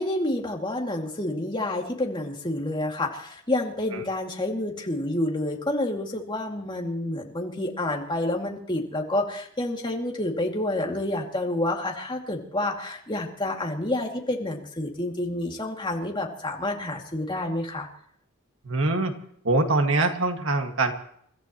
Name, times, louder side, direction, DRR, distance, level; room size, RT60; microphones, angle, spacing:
voice 1, 0.0-17.9, left 1 dB, 20° left, 0 dB, 2.5 m, -29 dB
voice 2, 18.6-19.2 19.4-20.9, right 2 dB, 65° right, 4 dB, 2.0 m, -23 dB
29.5 x 14.5 x 3.1 m, 0.67 s
head